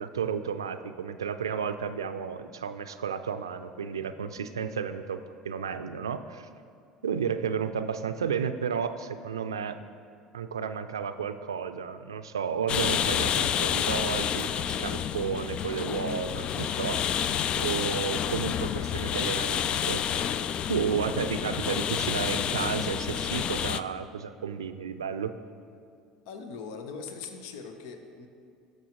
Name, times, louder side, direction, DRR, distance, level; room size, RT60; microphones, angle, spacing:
voice 1, 0.0-6.5 7.0-9.8 10.3-20.4 20.7-25.3, right 7 dB, 90° right, 10 dB, 0.4 m, -32 dB
voice 2, 7.1-7.4 26.3-28.3, left 5 dB, 70° left, 6 dB, 0.9 m, -41 dB
sound 1, 12.7-23.8, left 9 dB, 45° left, 0.3 m, -29 dB
18.5 x 6.6 x 3.0 m, 2.3 s
hypercardioid pair, 70°, 2 cm